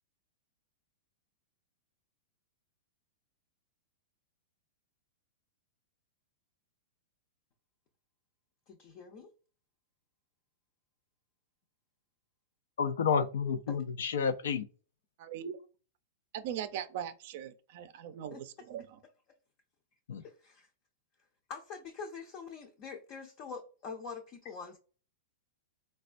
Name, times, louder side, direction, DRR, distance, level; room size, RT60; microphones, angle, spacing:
voice 1, 8.7-9.3 13.7-13.8 18.3-18.4 20.2-20.7 21.5-24.8, left 5 dB, 35° left, 0.5 m, -44 dB
voice 2, 12.8-14.7 20.1-20.2, left 6 dB, 85° left, 0.4 m, -30 dB
voice 3, 15.2-15.6 16.3-19.0, right 9 dB, 50° right, 0.4 m, -40 dB
4.1 x 2.2 x 2.5 m
supercardioid pair, 160°, 0 cm